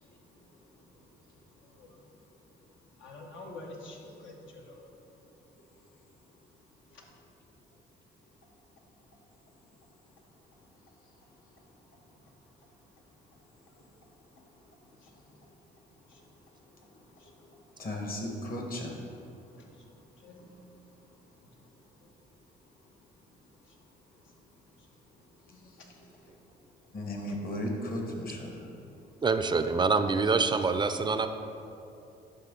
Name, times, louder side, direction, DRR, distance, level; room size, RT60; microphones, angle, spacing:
voice 1, 0.1-6.8 8.3-14.2 14.9-17.3 17.7-17.9 19.2-22.1 22.8-27.4 28.6-29.0, left 2 dB, 80° left, 0 dB, 1.1 m, -55 dB
voice 2, 17.8-19.0 26.9-28.7, left 1 dB, 50° left, 1 dB, 1.3 m, -35 dB
voice 3, 29.2-31.3, right 4 dB, 25° right, 9 dB, 0.4 m, -26 dB
11.0 x 3.7 x 3.8 m, 2.8 s
cardioid pair, 90°, 20 cm